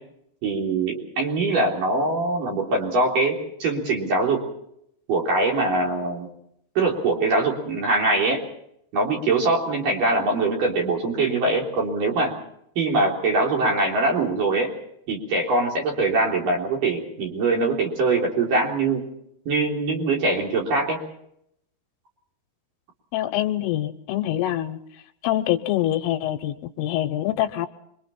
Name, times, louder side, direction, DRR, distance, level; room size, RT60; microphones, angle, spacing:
voice 1, 0.4-4.4 5.1-6.3 6.8-8.4 8.9-12.3 12.8-14.7 15.1-19.0 19.5-21.0, right 3 dB, 45° right, 0 dB, 4.7 m, -23 dB
voice 2, 23.1-24.8 25.2-27.7, left 13 dB, 80° left, 9 dB, 3.4 m, -25 dB
26.5 x 23.5 x 4.4 m, 0.74 s
omnidirectional pair, 5.9 m